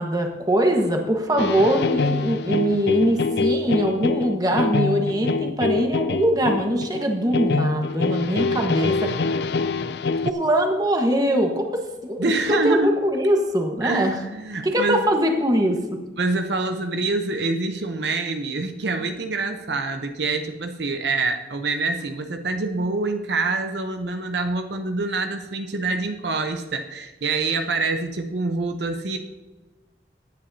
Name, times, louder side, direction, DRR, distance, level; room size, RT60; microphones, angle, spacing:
voice 1, 0.0-9.1 10.2-14.2 14.6-16.0, equal, 20° right, 3 dB, 1.3 m, -22 dB
sound 1, 1.4-10.3, left 3 dB, 65° left, 0.5 m, -25 dB
voice 2, 12.2-13.0 13.8-15.1 16.2-29.2, right 3 dB, 75° right, 6 dB, 0.8 m, -26 dB
17.0 x 9.8 x 2.8 m, 1.1 s
head